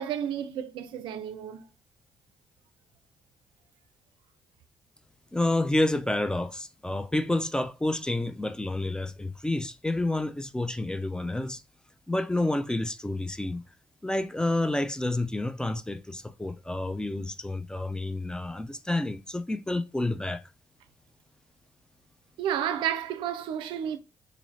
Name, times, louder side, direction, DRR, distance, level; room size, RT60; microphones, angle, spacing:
voice 1, 0.0-1.6 22.4-24.0, right 9 dB, 80° right, 0.4 m, -31 dB
voice 2, 5.3-11.6 12.1-13.6 14.0-20.4, left 2 dB, 10° left, 0.4 m, -29 dB
3.9 x 2.5 x 3.1 m
cardioid pair, 75°, 8 cm